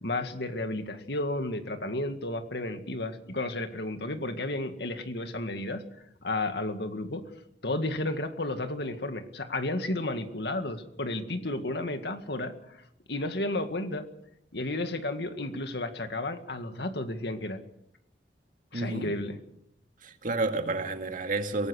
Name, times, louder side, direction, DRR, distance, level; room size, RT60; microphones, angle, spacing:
voice 1, 0.0-5.8 6.2-7.3 7.6-12.5 13.1-14.0 14.5-17.6 18.7-19.4, left 2 dB, 70° left, 2.1 m, -32 dB
voice 2, 18.7-19.1 20.0-21.7, right 3 dB, 50° right, 2.1 m, -30 dB
23.0 x 18.5 x 6.5 m
head